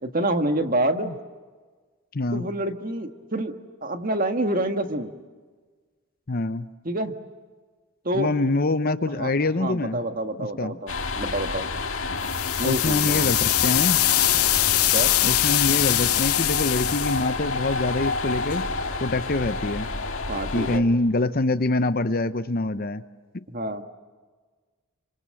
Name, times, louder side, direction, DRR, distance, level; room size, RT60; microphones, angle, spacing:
voice 1, 0.0-1.1 2.3-3.6 3.8-5.1 6.8-7.1 8.0-8.3 9.1-9.3 9.6-11.7 12.6-13.3 14.9-15.1 20.3-20.8 23.5-23.8, right 1 dB, 40° right, 6 dB, 1.6 m, -27 dB
voice 2, 2.1-2.5 6.3-6.7 8.1-10.0 10.4-10.7 12.6-14.0 15.2-18.7 19.0-19.9 20.5-23.0 23.3-23.4, left 2 dB, 40° left, 12 dB, 0.8 m, -25 dB
sound 1, 10.9-20.8, left 3 dB, 65° left, 2.0 m, -29 dB
sound 2, 12.2-17.3, left 15 dB, 85° left, 0.7 m, -22 dB
28.0 x 25.5 x 7.7 m, 1.4 s
head